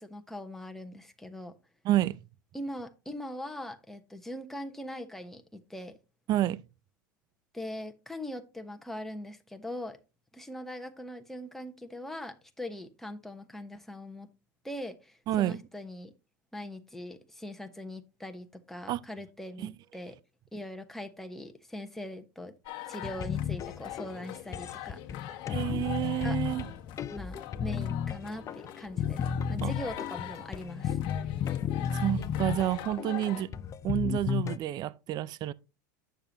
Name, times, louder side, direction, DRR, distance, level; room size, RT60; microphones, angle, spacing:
voice 1, 0.0-1.5 2.5-6.0 7.5-10.0 10.3-14.3 14.6-16.1 16.5-20.2 20.5-22.5 22.9-25.3 26.2-26.4 27.1-31.0, left 1 dB, 5° left, 1.1 m, -41 dB
voice 2, 1.8-2.2 6.3-6.6 15.3-15.6 18.9-19.0 19.6-19.7 25.5-26.6 29.6-29.7 31.9-33.5 33.8-35.5, right 13 dB, 40° right, 0.4 m, -29 dB
sound 1, 22.6-33.4, left 14 dB, 50° left, 1.3 m, -43 dB
sound 2, 23.0-34.6, left 8 dB, 30° left, 0.6 m, -34 dB
8.8 x 6.8 x 2.9 m
hypercardioid pair, 105°, 11 cm